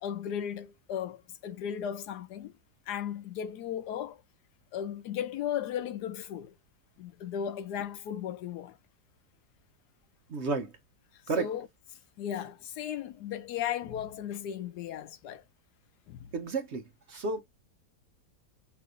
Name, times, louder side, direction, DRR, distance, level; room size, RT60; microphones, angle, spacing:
voice 1, 0.0-2.5 2.9-4.2 4.7-6.5 7.0-8.8 11.3-11.7 12.2-15.4 16.1-16.3, left 9 dB, 90° left, 1.2 m, -36 dB
voice 2, 10.3-10.7 11.3-11.5 16.3-16.8 17.1-17.4, right 4 dB, 55° right, 0.9 m, -31 dB
5.7 x 2.7 x 2.4 m
omnidirectional pair, 1.7 m